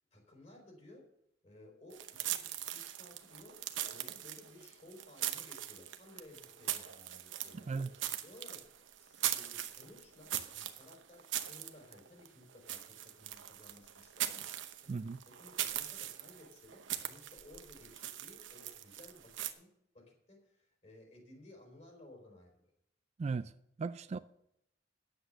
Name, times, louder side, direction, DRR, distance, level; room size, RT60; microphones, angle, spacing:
voice 1, 0.1-1.1 1.4-15.0 15.2-22.6, left 1 dB, 35° left, 4.2 m, -57 dB
sound 1, 1.9-19.5, right 12 dB, 90° right, 0.9 m, -41 dB
voice 2, 7.5-7.9 14.9-15.2 23.2-23.5 23.8-24.2, right 4 dB, 35° right, 0.3 m, -37 dB
10.0 x 8.0 x 6.5 m
head